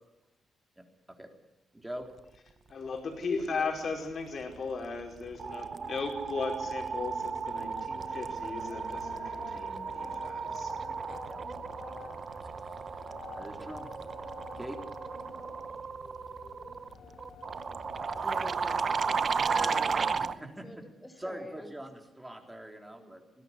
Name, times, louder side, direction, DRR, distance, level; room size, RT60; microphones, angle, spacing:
voice 1, 0.8-1.3 1.7-2.1 3.4-3.7 11.3-11.4 12.6-13.9 14.6-14.8 20.2-20.8 21.2-23.2, right 1 dB, 10° right, 3 dB, 3.8 m, -44 dB
voice 2, 2.7-10.7, left 4 dB, 50° left, 2 dB, 5.0 m, -36 dB
sound 1, 4.5-4.8 5.1-20.4, right 5 dB, 40° right, 0.8 m, -34 dB
sound 2, 7.0-20.3, left 5 dB, 65° left, 4.3 m, -49 dB
voice 3, 18.2-20.1 20.6-21.7 22.9-23.1, left 1 dB, 10° left, 8 dB, 4.3 m, -45 dB
20.0 x 17.0 x 9.9 m, 0.95 s
cardioid pair, 120°, 0 cm